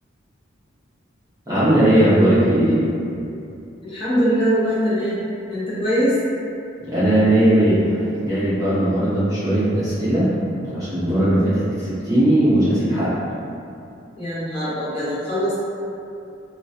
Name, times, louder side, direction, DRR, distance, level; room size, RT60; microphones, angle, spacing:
voice 1, 1.5-2.8 6.8-10.3 10.7-13.1, right 1 dB, 20° right, -13 dB, 0.6 m, -18 dB
voice 2, 3.8-6.2 14.2-15.6, equal, 25° left, -12 dB, 0.7 m, -22 dB
2.2 x 2.2 x 2.6 m, 2.6 s
head